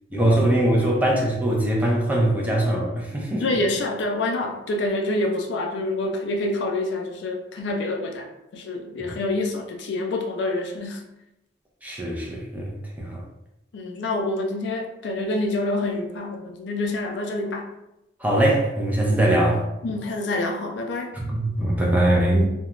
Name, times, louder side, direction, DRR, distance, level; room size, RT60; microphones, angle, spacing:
voice 1, 0.1-3.4 9.0-9.1 11.8-12.7 13.0-13.2 18.2-19.7 21.1-22.4, right 1 dB, 10° right, -3 dB, 0.4 m, -21 dB
voice 2, 3.3-11.0 13.7-17.7 19.8-21.2, left 2 dB, 60° left, 2 dB, 0.4 m, -27 dB
2.3 x 2.1 x 2.9 m, 0.88 s
head